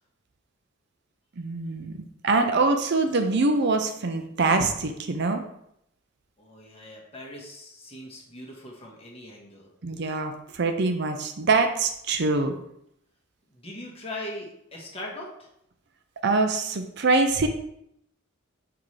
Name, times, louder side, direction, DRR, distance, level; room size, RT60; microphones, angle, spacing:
voice 1, 1.4-1.9 2.2-5.4 9.8-12.5 16.2-17.5, right 3 dB, 55° right, 6 dB, 0.6 m, -24 dB
voice 2, 6.4-9.7 13.5-15.5, left 1 dB, 30° left, -2 dB, 1.5 m, -40 dB
6.0 x 5.7 x 3.3 m, 0.77 s
head